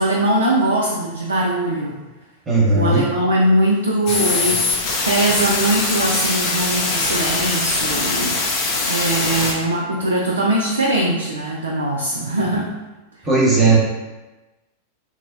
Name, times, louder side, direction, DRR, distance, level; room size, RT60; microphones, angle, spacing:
voice 1, 0.0-1.9 2.7-8.6 8.9-12.7, right 1 dB, 75° right, -3 dB, 0.3 m, -21 dB
voice 2, 2.5-3.0 13.3-13.8, right 3 dB, 20° right, -4 dB, 0.8 m, -15 dB
sound 1, 4.1-9.5, left 3 dB, 45° left, 0.5 m, -22 dB
2.9 x 2.1 x 2.5 m, 1.1 s
figure-of-eight pair, 90°, 0 cm